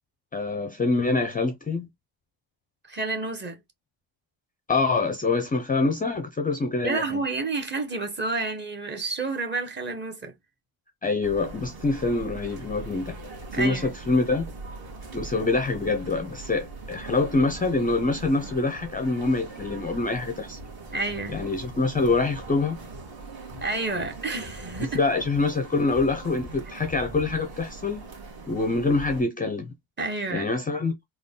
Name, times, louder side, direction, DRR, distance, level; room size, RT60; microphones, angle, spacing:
voice 1, 0.3-1.9 4.7-7.2 11.0-13.2 13.5-14.4 15.1-20.6 21.3-22.8 24.9-28.0 28.5-29.7 30.3-31.0, left 3 dB, 20° left, 0.5 m, -25 dB
voice 2, 2.9-3.6 6.8-10.3 13.5-13.9 20.9-21.4 23.6-25.0 30.0-30.5, right 3 dB, 20° right, 1.0 m, -30 dB
sound 1, 11.2-29.2, right 3 dB, 45° right, 1.7 m, -41 dB
3.7 x 2.3 x 3.6 m
cardioid pair, 125°, 50 cm